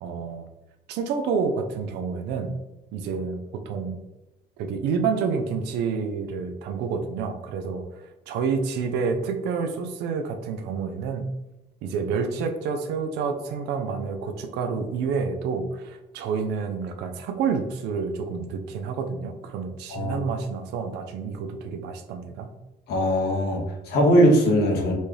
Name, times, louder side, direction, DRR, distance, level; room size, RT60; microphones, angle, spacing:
voice 1, 0.0-0.5 0.9-2.5 2.9-4.0 4.6-7.8 8.3-11.3 11.8-22.5, right 5 dB, 85° right, 6 dB, 0.5 m, -28 dB
voice 2, 19.9-20.2 22.9-24.9, equal, 70° left, 0 dB, 0.9 m, -20 dB
4.1 x 2.3 x 3.2 m, 0.96 s
cardioid pair, 110°, 17 cm